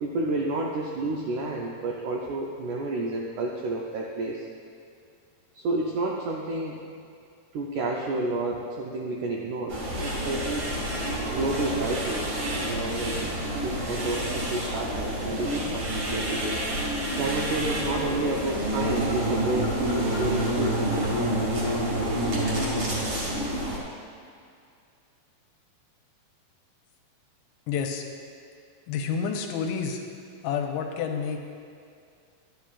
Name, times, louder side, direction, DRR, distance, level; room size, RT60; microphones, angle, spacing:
voice 1, 0.0-4.5 5.5-6.8 7.5-10.7 11.3-13.3 13.6-16.6 17.2-20.8, right 2 dB, 85° right, -2 dB, 1.7 m, -30 dB
sound 1, 9.7-23.8, right 1 dB, 45° right, 2.1 m, -28 dB
voice 2, 27.7-28.0 28.9-30.0 30.4-31.4, left 6 dB, 90° left, 3 dB, 2.6 m, -29 dB
11.5 x 10.0 x 2.4 m, 2.4 s
omnidirectional pair, 4.3 m